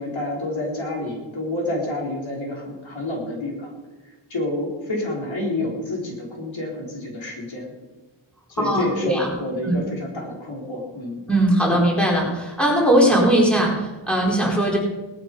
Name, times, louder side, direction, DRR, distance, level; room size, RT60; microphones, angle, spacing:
voice 1, 0.0-3.7 4.3-7.7 8.5-11.2, left 1 dB, 65° left, -2 dB, 4.2 m, -29 dB
voice 2, 8.6-9.3 9.6-9.8 11.3-14.8, right 1 dB, ahead, -3 dB, 4.3 m, -19 dB
18.5 x 12.0 x 5.4 m, 1.2 s
wide cardioid pair, 115°, 50 cm